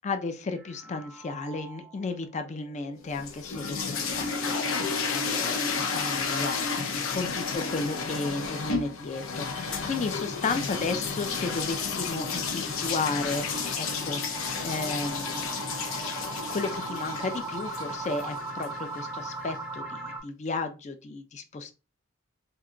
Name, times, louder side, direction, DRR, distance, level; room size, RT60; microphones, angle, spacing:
voice 1, 0.0-13.4 13.7-21.7, left 3 dB, 35° left, 7 dB, 0.4 m, -34 dB
sound 1, 0.6-2.1 2.5-2.6 2.9-3.0 3.5-3.6 8.4-20.2, right 2 dB, 5° right, 0.8 m, -40 dB
sound 2, 3.1-19.1, left 5 dB, 80° left, 0.6 m, -32 dB
2.8 x 2.2 x 3.7 m, 0.30 s
head